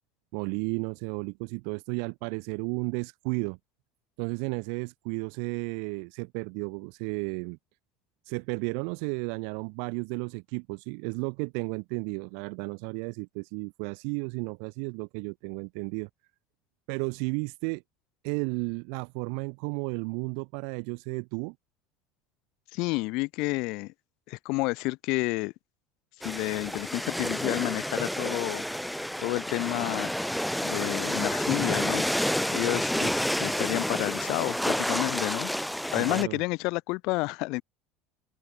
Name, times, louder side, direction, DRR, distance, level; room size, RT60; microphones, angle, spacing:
voice 1, 0.3-3.6 4.2-7.6 8.3-16.1 16.9-17.8 18.2-21.5 36.0-36.4, right 40 dB or more, 55° right, 1.2 m, -33 dB
voice 2, 22.7-23.9 24.3-25.5 26.2-30.1 30.6-32.0 32.5-35.5 35.9-37.6, left 25 dB, 50° left, 0.4 m, -30 dB
sound 1, 26.2-36.2, equal, ahead, 0.8 m, -29 dB
cardioid pair, 175°, 0 cm